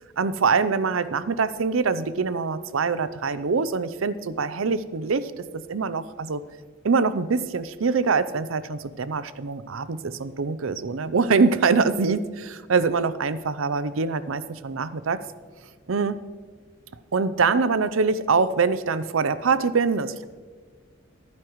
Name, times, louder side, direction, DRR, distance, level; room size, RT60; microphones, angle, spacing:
voice 1, 0.2-6.4 6.8-15.2 15.9-16.2 17.1-20.3, right 4 dB, 90° right, 14 dB, 0.6 m, -24 dB
23.0 x 9.6 x 3.1 m, 1.5 s
head